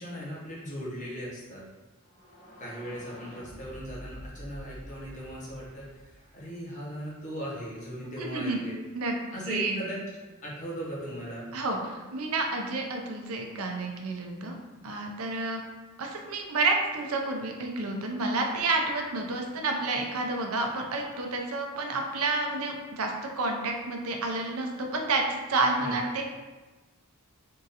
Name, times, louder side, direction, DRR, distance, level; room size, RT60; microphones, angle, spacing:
voice 1, 0.0-1.6 2.6-8.8 9.3-10.0 10.4-11.5 25.8-26.0, equal, 35° left, -6 dB, 1.0 m, -38 dB
sound 1, 2.0-6.9, equal, 80° left, 1.1 m, -47 dB
voice 2, 8.2-8.6 8.9-9.2 9.5-9.8 11.5-14.6 14.8-15.6 16.0-26.2, right 3 dB, 75° right, 2 dB, 0.6 m, -30 dB
3.7 x 2.6 x 4.0 m, 1.2 s
head